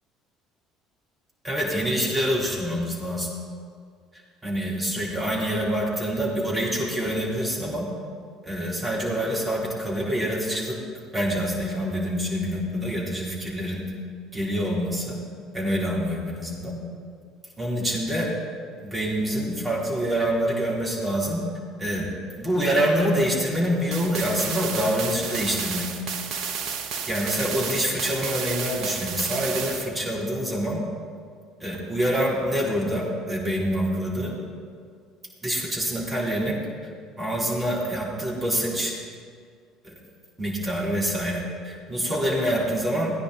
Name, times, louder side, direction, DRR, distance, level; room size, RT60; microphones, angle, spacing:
voice 1, 1.4-3.3 4.4-7.9 8.4-10.8 11.1-13.8 14.3-15.2 15.5-16.8 17.6-18.3 18.8-21.4 21.8-22.1 22.4-25.8 27.1-30.8 31.6-34.3 35.4-36.6 37.2-38.9 39.8-39.9 40.4-43.1, equal, 20° right, -4 dB, 4.0 m, -26 dB
sound 1, 23.9-29.9, right 6 dB, 55° right, 0.9 m, -32 dB
16.0 x 9.8 x 4.4 m, 2.1 s
figure-of-eight pair, 55°, 0 cm